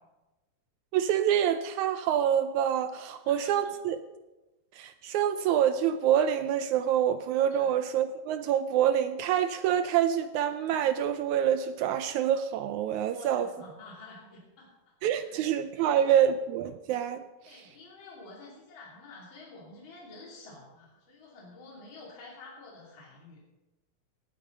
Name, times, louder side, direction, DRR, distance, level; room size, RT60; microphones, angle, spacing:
voice 1, 0.9-4.0 4.7-13.5 15.0-17.2, right 9 dB, 80° right, 10 dB, 1.9 m, -26 dB
voice 2, 3.1-3.5 7.5-7.7 13.1-14.7 15.2-15.4 15.7-16.0 17.4-23.5, left 2 dB, 40° left, -4 dB, 3.5 m, -49 dB
18.0 x 8.6 x 5.4 m, 1.1 s
omnidirectional pair, 3.6 m